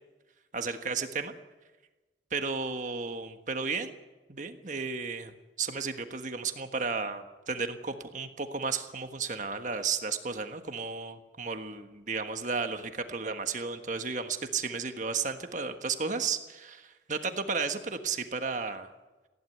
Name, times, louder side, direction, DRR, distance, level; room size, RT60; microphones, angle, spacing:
voice 1, 0.5-1.3 2.3-3.9 4.3-5.3 5.6-18.9, right 5 dB, 40° right, 7 dB, 1.4 m, -33 dB
19.5 x 15.5 x 9.5 m, 1.1 s
head